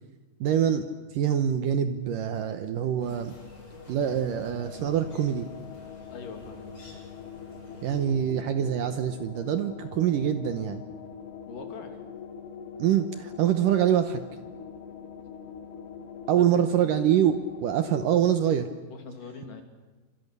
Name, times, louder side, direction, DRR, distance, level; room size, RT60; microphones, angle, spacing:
voice 1, 0.4-0.8 1.1-3.4 3.9-5.5 7.8-10.8 12.8-14.2 16.3-18.7, right 9 dB, 70° right, 9 dB, 2.3 m, -25 dB
sound 1, 2.8-18.2, left 7 dB, 85° left, 3.9 m, -43 dB
sound 2, 3.0-8.0, left 1 dB, 30° left, 8.3 m, -50 dB
voice 2, 6.1-6.7 11.5-11.9 16.3-16.5 18.9-19.6, left 4 dB, 55° left, 5 dB, 4.2 m, -42 dB
29.0 x 26.0 x 6.8 m, 1.3 s
omnidirectional pair, 4.7 m